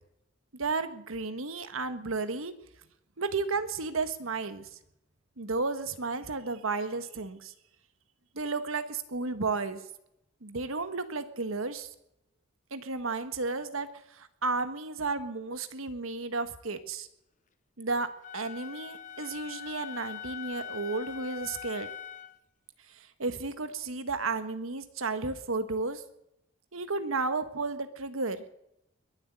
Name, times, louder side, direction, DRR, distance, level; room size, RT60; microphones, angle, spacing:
voice 1, 0.5-2.5 3.2-4.7 5.4-7.5 8.3-9.8 10.4-11.9 12.7-17.1 17.8-18.1 18.3-21.9 22.9-26.0 26.7-28.4, right 3 dB, 85° right, 11 dB, 1.4 m, -33 dB
Wind instrument woodwind instrument, 18.2-22.4, left 9 dB, 35° left, 0.8 m, -42 dB
22.0 x 8.0 x 8.0 m, 0.80 s
head